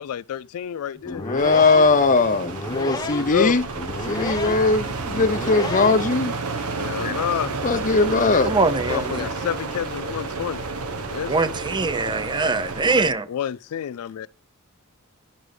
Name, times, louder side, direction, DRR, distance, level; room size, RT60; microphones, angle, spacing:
voice 1, 0.0-1.3 3.0-3.6 6.7-7.5 7.9-8.0 8.9-10.7 11.1-11.4 13.3-14.3, left 9 dB, 80° left, 0.3 m, -29 dB
sound 1, 1.0-6.2, left 2 dB, 15° left, 1.1 m, -32 dB
voice 2, 1.2-3.6 4.1-6.4 7.0-7.1 7.6-8.5, left 3 dB, 35° left, 0.7 m, -20 dB
sound 2, 1.4-13.1, right 3 dB, 80° right, 1.2 m, -31 dB
voice 3, 8.5-9.3 11.3-13.3, right 3 dB, 20° right, 0.5 m, -23 dB
10.5 x 6.1 x 3.3 m
head